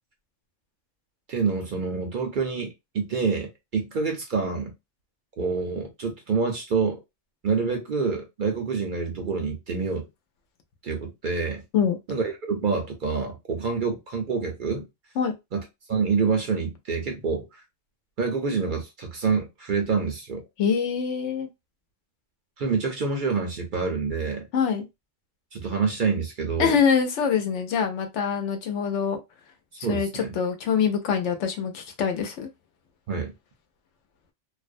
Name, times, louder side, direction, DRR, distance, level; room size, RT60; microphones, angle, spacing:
voice 1, 1.3-4.7 5.4-7.0 7.4-10.1 10.8-11.6 12.1-14.8 15.5-15.6 15.9-17.6 18.2-20.4 22.6-24.5 25.5-26.8 29.8-30.3 33.1-33.3, right 5 dB, 55° right, 0.6 m, -27 dB
voice 2, 20.6-21.5 24.5-24.8 26.6-29.2 29.8-32.5, left 7 dB, 80° left, 0.9 m, -24 dB
2.5 x 2.1 x 2.4 m
omnidirectional pair, 1.2 m